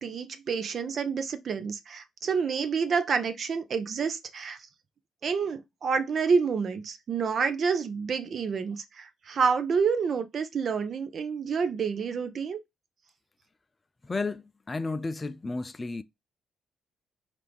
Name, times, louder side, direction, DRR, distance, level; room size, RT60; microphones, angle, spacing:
voice 1, 0.0-4.6 5.2-12.6, right 5 dB, 55° right, 0.6 m, -28 dB
voice 2, 14.0-16.0, left 3 dB, 25° left, 0.3 m, -32 dB
4.4 x 2.5 x 3.3 m
cardioid pair, 90°, 0 cm